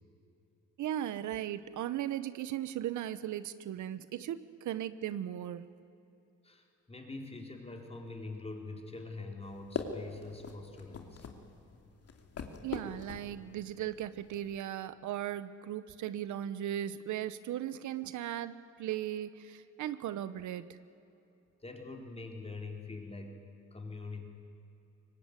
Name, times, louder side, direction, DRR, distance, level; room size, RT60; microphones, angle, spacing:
voice 1, 0.8-5.7 12.6-20.8, right 11 dB, 75° right, 14 dB, 1.0 m, -37 dB
voice 2, 6.4-11.2 21.6-23.4 23.7-24.3, left 3 dB, 20° left, 3 dB, 4.1 m, -44 dB
sound 1, 9.4-14.6, left 5 dB, 50° left, 2.7 m, -43 dB
23.5 x 19.5 x 9.7 m, 2.8 s
cardioid pair, 90°, 30 cm